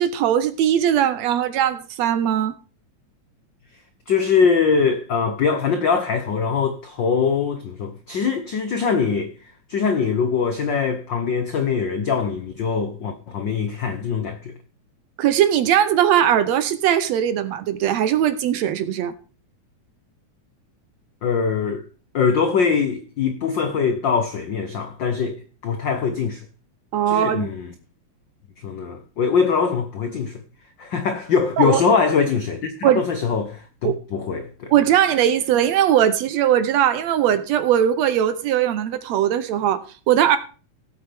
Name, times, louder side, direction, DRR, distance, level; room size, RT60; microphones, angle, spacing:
voice 1, 0.0-2.5 15.2-19.1 26.9-27.5 31.6-31.8 32.8-33.0 33.8-34.0 34.7-40.4, right 10 dB, 75° right, 1.8 m, -19 dB
voice 2, 4.1-14.5 21.2-21.9 22.1-26.5 27.1-27.7 28.6-30.4 30.8-34.7, left 5 dB, 80° left, 1.0 m, -22 dB
17.5 x 7.9 x 3.4 m
omnidirectional pair, 3.5 m